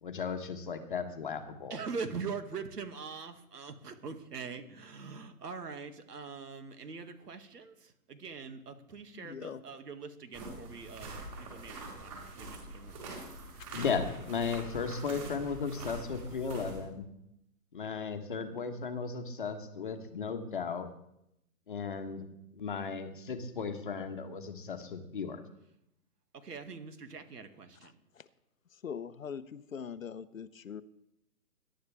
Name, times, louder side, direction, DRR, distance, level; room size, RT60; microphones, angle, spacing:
voice 1, 0.0-1.8 13.7-17.1 17.7-20.9 21.7-22.2 22.5-25.4, left 5 dB, 35° left, 6 dB, 1.2 m, -35 dB
voice 2, 1.7-13.0 26.3-27.9, right 5 dB, 80° right, 7 dB, 2.2 m, -43 dB
voice 3, 9.1-9.6 27.8-27.9 28.2-28.3 28.8-30.8, left 7 dB, 55° left, 14 dB, 0.9 m, -42 dB
sound 1, 10.3-16.8, right 2 dB, 20° right, 4.9 m, -44 dB
21.5 x 11.5 x 3.4 m, 0.81 s
hypercardioid pair, 175°, 47 cm